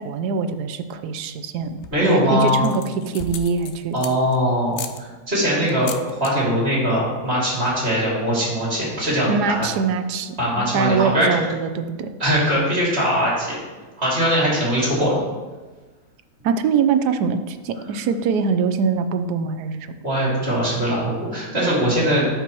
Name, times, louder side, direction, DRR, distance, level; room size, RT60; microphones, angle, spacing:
voice 1, 0.0-3.9 9.3-12.1 16.4-19.9, right 5 dB, 90° right, 9 dB, 1.2 m, -23 dB
sound 1, 1.6-2.1 2.6-4.4 4.7-5.0 5.7-6.3 6.6-6.9 7.2-7.3 7.5-7.9, left 7 dB, 85° left, 0.5 m, -35 dB
voice 2, 1.9-2.6 3.9-5.9 6.2-9.7 10.4-11.3 12.2-13.6 14.0-15.1 20.0-22.3, equal, 40° right, -6 dB, 2.9 m, -21 dB
13.0 x 5.3 x 3.0 m, 1.3 s
omnidirectional pair, 1.7 m